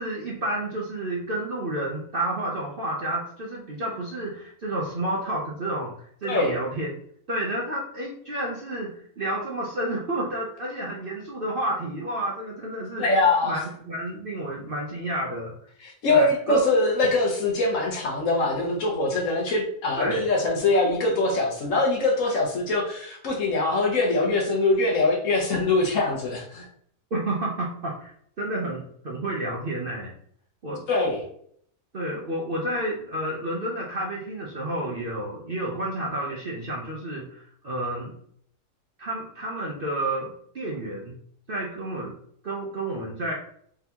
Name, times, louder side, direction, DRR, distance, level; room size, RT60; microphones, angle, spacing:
voice 1, 0.0-6.9 7.3-13.1 13.4-15.5 16.1-16.6 20.0-20.3 27.1-30.1 30.6-30.9 31.9-38.2 39.0-41.1 41.5-42.2 42.4-43.3, right 1 dB, 50° right, -3 dB, 0.7 m, -30 dB
voice 2, 6.2-6.5 13.0-13.6 15.8-26.6 30.9-31.2, left 2 dB, 60° left, 0 dB, 1.2 m, -23 dB
3.8 x 3.5 x 2.9 m, 0.64 s
omnidirectional pair, 1.6 m